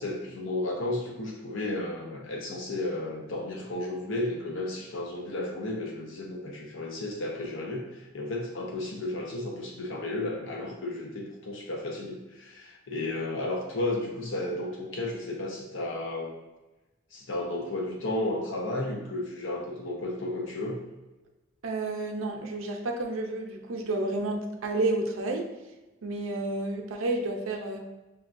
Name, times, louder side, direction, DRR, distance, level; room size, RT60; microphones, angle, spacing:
voice 1, 0.0-16.3 17.1-20.8, left 2 dB, 75° left, -1 dB, 0.6 m, -33 dB
voice 2, 21.6-25.5 26.0-27.8, right 2 dB, 90° right, 2 dB, 0.6 m, -30 dB
5.9 x 2.2 x 2.5 m, 1.1 s
head